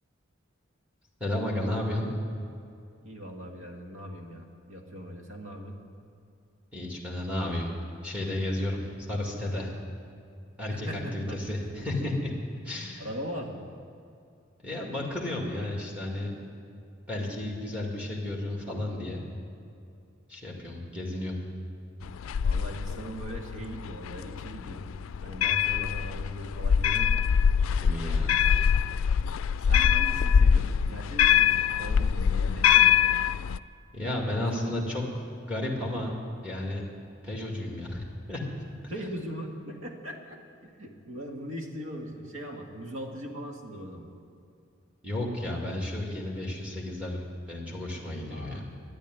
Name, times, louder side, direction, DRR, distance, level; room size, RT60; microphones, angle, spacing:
voice 1, 1.2-2.1 6.7-7.7 8.0-9.7 10.6-12.3 12.6-13.1 14.6-16.3 17.1-19.2 20.3-21.4 27.8-28.4 33.9-35.0 35.4-36.8 37.2-38.4 45.0-47.2 47.5-48.6, left 1 dB, 5° right, -1 dB, 2.1 m, -32 dB
voice 2, 3.0-5.8 10.7-11.9 13.0-13.6 22.4-24.8 25.2-27.2 29.7-32.9 34.3-34.7 38.9-44.1 48.3-48.7, equal, 85° right, 2 dB, 1.8 m, -40 dB
sound 1, 22.0-33.6, left 8 dB, 85° left, 0.3 m, -24 dB
12.5 x 10.0 x 9.3 m, 2.5 s
head